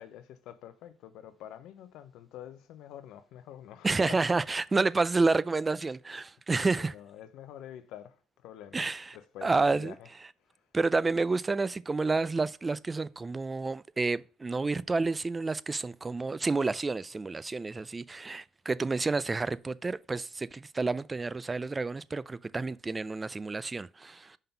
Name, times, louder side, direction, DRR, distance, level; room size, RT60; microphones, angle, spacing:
voice 1, 0.0-4.7 6.5-8.2 8.4-10.2 10.5-10.6, left 11 dB, 80° left, 0.6 m, -47 dB
voice 2, 3.8-6.9 8.7-9.2 9.4-9.9 10.7-24.4, right 3 dB, 25° right, 0.3 m, -29 dB
5.4 x 3.8 x 5.7 m
cardioid pair, 90°, 0 cm